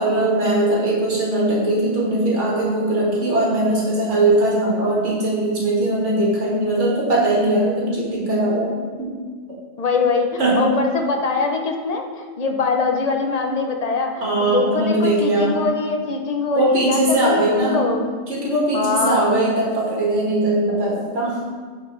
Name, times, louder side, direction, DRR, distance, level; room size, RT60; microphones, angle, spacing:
voice 1, 0.0-9.1 10.4-10.7 14.2-15.6 16.5-17.9 18.3-21.4, right 1 dB, 65° right, -5 dB, 2.1 m, -20 dB
voice 2, 9.8-18.1 18.7-19.4, left 4 dB, 45° left, 3 dB, 0.6 m, -23 dB
10.5 x 4.4 x 3.1 m, 1.5 s
omnidirectional pair, 1.3 m